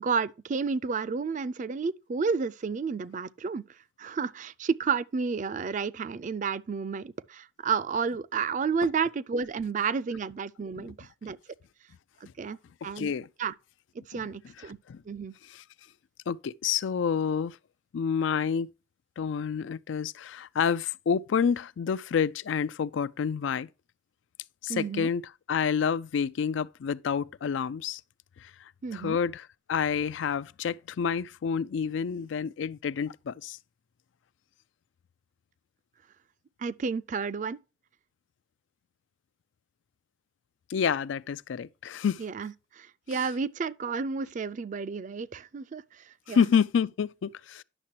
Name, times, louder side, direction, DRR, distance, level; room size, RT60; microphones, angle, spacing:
voice 1, 0.0-3.6 4.0-11.4 12.4-12.6 12.8-13.1 13.4-13.5 13.9-14.8 15.1-15.3 24.7-25.1 28.8-29.2 36.6-37.6 42.2-46.5, right 5 dB, 40° right, 0.4 m, -31 dB
voice 2, 12.8-13.3 14.1-14.2 14.9-15.0 16.3-17.6 17.9-18.7 19.2-23.7 24.6-25.2 25.5-28.0 28.9-29.4 29.7-33.6 40.7-42.2 46.3-47.6, left 7 dB, 85° left, 0.4 m, -28 dB
9.9 x 6.6 x 2.8 m
head